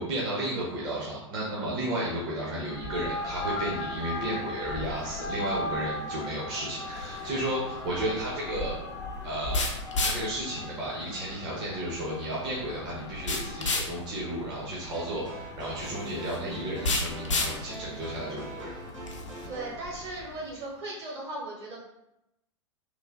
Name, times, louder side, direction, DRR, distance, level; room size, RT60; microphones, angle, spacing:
voice 1, 0.0-8.7 9.2-9.7 10.0-18.7, right 1 dB, 30° right, -5 dB, 0.6 m, -33 dB
sound 1, 2.6-20.5, left 2 dB, 20° left, 0.3 m, -39 dB
sound 2, 6.9-19.5, left 2 dB, 75° left, 0.5 m, -34 dB
sound 3, 14.9-19.8, right 1 dB, 85° right, 0.7 m, -43 dB
voice 2, 19.4-21.8, right 2 dB, 55° right, -5 dB, 1.3 m, -37 dB
3.1 x 2.1 x 2.4 m, 0.87 s
figure-of-eight pair, 95°, 16 cm